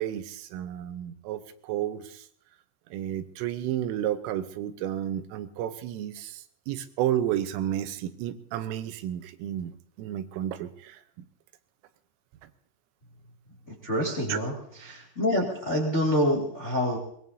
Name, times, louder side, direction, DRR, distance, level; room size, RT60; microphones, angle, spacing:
voice 1, 0.0-2.2 2.9-11.0 14.3-14.4, right 11 dB, 85° right, 10 dB, 3.4 m, -32 dB
voice 2, 13.7-17.0, equal, 40° left, -1 dB, 1.0 m, -27 dB
23.5 x 20.0 x 2.7 m, 0.65 s
omnidirectional pair, 5.7 m